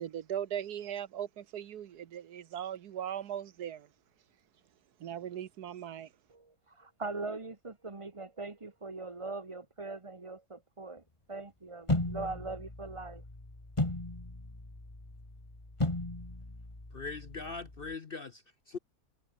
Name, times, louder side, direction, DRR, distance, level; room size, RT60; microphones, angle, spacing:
voice 1, 0.0-3.9 5.0-6.1, right 10 dB, 75° right, 1.5 m, -39 dB
voice 2, 6.3-13.2, right 3 dB, 20° right, 1.5 m, -41 dB
sound 1, 11.9-17.9, left 1 dB, 20° left, 2.8 m, -36 dB
voice 3, 16.9-18.8, left 4 dB, 45° left, 0.9 m, -41 dB
omnidirectional pair, 1.7 m